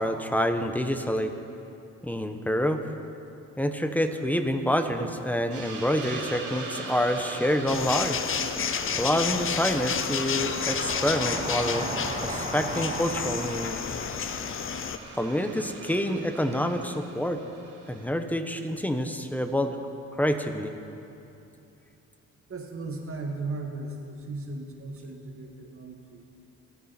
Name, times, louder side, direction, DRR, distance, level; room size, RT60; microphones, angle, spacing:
voice 1, 0.0-1.3 2.0-2.8 3.6-8.2 8.9-11.9 12.2-13.8 15.2-17.4 17.9-19.8 20.2-20.7, equal, 5° left, 7 dB, 1.1 m, -27 dB
Train, 4.7-6.0 6.4-7.4 7.9-16.7 16.9-17.0, right 2 dB, 20° right, 1.4 m, -39 dB
Hiss, 5.5-18.0, right 3 dB, 70° right, 2.8 m, -41 dB
sound 1, 7.7-15.0, left 7 dB, 45° left, 0.8 m, -31 dB
voice 2, 22.5-26.2, right 3 dB, 45° right, 2 dB, 2.2 m, -36 dB
28.0 x 9.4 x 4.5 m, 2.7 s
cardioid pair, 90°, 30 cm